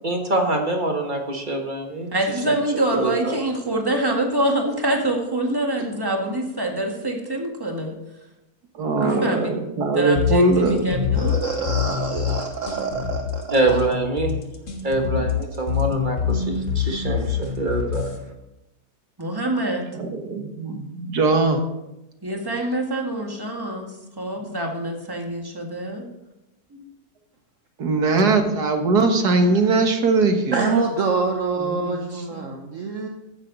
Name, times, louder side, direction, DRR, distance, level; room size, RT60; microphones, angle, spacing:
voice 1, 0.0-2.1 2.5-2.6 2.9-3.4 9.0-9.2 13.5-14.4 14.8-18.1, right 2 dB, 30° right, 3 dB, 1.7 m, -24 dB
voice 2, 2.1-8.0 9.0-9.5 9.9-11.4 19.2-19.8 22.2-23.9 24.2-26.0 31.6-32.5, right 1 dB, 15° right, 1 dB, 1.9 m, -25 dB
voice 3, 8.8-10.9 19.9-21.6 27.8-30.7, right 3 dB, 90° right, 5 dB, 2.0 m, -20 dB
sound 1, 10.2-18.2, left 8 dB, 55° left, 1.9 m, -25 dB
voice 4, 11.1-13.8 30.5-33.1, right 4 dB, 55° right, 2 dB, 1.4 m, -26 dB
15.0 x 9.9 x 4.0 m, 0.94 s
omnidirectional pair, 1.6 m